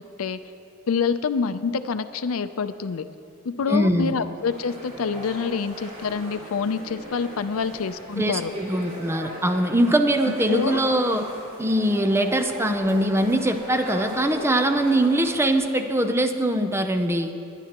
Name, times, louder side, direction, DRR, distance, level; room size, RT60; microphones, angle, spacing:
voice 1, 0.9-3.1 3.4-8.5 10.2-10.8, left 5 dB, 85° left, 11 dB, 0.5 m, -27 dB
voice 2, 3.7-4.2 8.2-11.3 11.6-17.3, right 1 dB, 10° right, 6 dB, 0.5 m, -22 dB
sound 1, 4.4-15.6, right 1 dB, 45° right, 3.4 m, -38 dB
21.0 x 10.5 x 3.0 m, 2.7 s
head